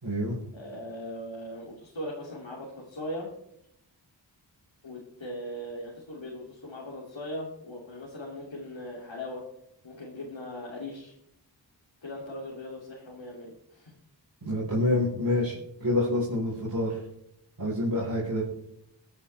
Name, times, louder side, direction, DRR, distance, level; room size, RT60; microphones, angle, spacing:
voice 1, 0.0-0.4 14.4-15.5 15.8-17.0 17.6-18.4, left 1 dB, 50° right, -8 dB, 4.9 m, -27 dB
voice 2, 0.5-3.3 4.8-9.4 9.8-11.1 12.0-13.9, left 1 dB, 90° left, -5 dB, 3.0 m, -39 dB
24.5 x 8.8 x 3.4 m, 0.75 s
wide cardioid pair, 70°, 45 cm